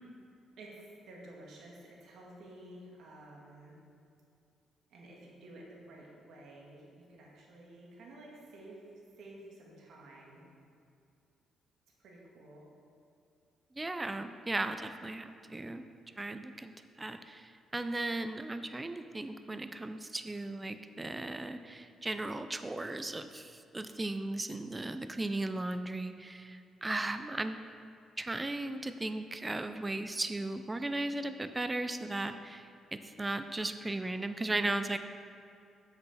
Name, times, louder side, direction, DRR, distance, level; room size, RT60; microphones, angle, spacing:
voice 1, 0.6-3.8 4.9-8.9 9.2-10.4 12.0-12.7, right 1 dB, 75° right, -3 dB, 1.8 m, -52 dB
voice 2, 13.7-15.8 16.2-27.6 28.2-32.7 33.2-35.0, right 2 dB, 20° right, 9 dB, 0.5 m, -36 dB
7.8 x 6.9 x 4.2 m, 2.5 s
cardioid pair, 90°, 0 cm